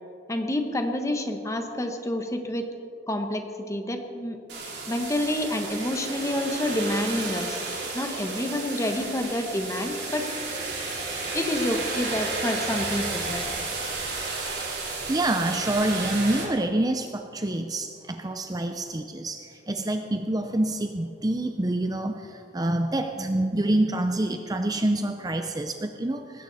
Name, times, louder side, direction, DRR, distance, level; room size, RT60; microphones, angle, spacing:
voice 1, 0.3-2.6 3.1-4.4 4.9-7.6 7.9-10.3 11.3-13.4, left 1 dB, 15° left, 5 dB, 1.2 m, -28 dB
sound 1, 4.5-16.4, right 3 dB, 60° right, 4.3 m, -32 dB
voice 2, 15.1-26.4, right 1 dB, 20° right, 6 dB, 0.6 m, -27 dB
19.5 x 16.0 x 4.1 m, 2.5 s
head